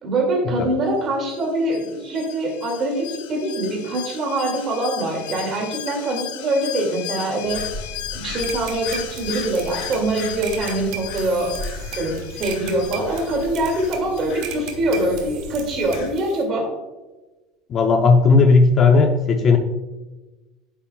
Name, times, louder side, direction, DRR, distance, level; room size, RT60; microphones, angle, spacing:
voice 1, 0.0-7.6 8.1-11.5 12.0-16.7, right 1 dB, 30° right, 1 dB, 2.2 m, -24 dB
Alarm, 1.3-14.8 15.1-15.2, left 12 dB, 85° left, 0.6 m, -36 dB
sound 1, 7.4-16.1, left 3 dB, 60° left, 2.1 m, -36 dB
sound 2, 8.4-16.4, right 9 dB, 60° right, 1.4 m, -38 dB
voice 2, 17.7-19.6, left 4 dB, 30° left, 5 dB, 0.6 m, -15 dB
9.3 x 7.0 x 2.3 m, 1.1 s
cardioid pair, 160°, 0 cm